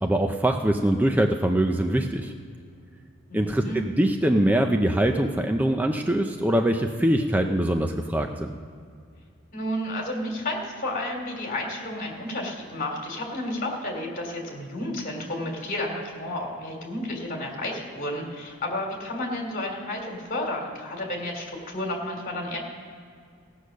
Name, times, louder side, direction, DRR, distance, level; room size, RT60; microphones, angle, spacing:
voice 1, 0.0-2.3 3.3-8.5, right 1 dB, 10° right, 4 dB, 0.5 m, -23 dB
voice 2, 3.3-3.8 9.5-22.6, left 1 dB, 45° left, 1 dB, 2.9 m, -31 dB
15.5 x 8.2 x 6.3 m, 2.3 s
head